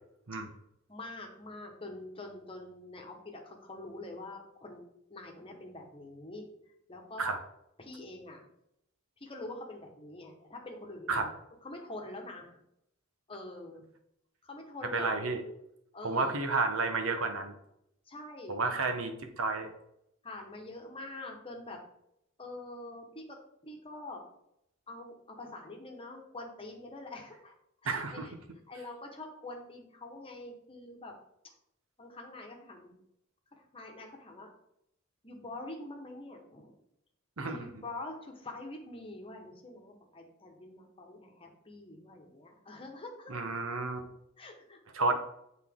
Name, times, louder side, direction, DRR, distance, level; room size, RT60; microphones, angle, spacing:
voice 1, 0.9-4.8 5.1-6.5 6.9-7.3 7.8-8.4 9.2-11.3 11.6-12.6 13.3-13.8 14.4-15.2 15.9-16.4 18.1-18.8 20.2-21.8 22.4-23.2 23.6-24.2 24.9-27.5 27.8-28.3 28.7-31.1 32.0-32.9 33.6-34.5 35.2-36.7 37.4-43.3 44.4-45.2, left 2 dB, 25° left, 2 dB, 1.2 m, -45 dB
voice 2, 14.9-15.4 16.0-17.5 18.5-19.1 19.4-19.7 27.8-28.3 37.4-37.7 43.3-44.0 44.9-45.2, right 3 dB, 75° right, 6 dB, 1.0 m, -31 dB
8.2 x 4.0 x 3.7 m, 0.77 s
head